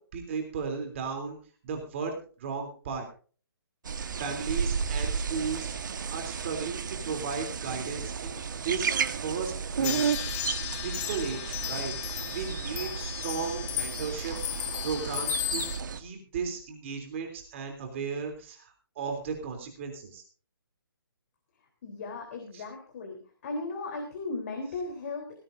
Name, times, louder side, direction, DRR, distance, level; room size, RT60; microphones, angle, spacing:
voice 1, 0.0-1.4 1.6-3.1 4.2-10.1 10.8-15.6 16.0-20.2 22.5-22.6, right 5 dB, 30° right, 3 dB, 3.2 m, -35 dB
sound 1, 3.8-16.0, right 6 dB, 55° right, 1.4 m, -33 dB
sound 2, 9.8-15.8, left 13 dB, 15° left, 0.9 m, -35 dB
voice 2, 21.8-23.2 23.4-25.4, left 3 dB, 40° left, 2 dB, 3.6 m, -36 dB
18.5 x 16.0 x 2.6 m, 0.40 s
hypercardioid pair, 160°, 13 cm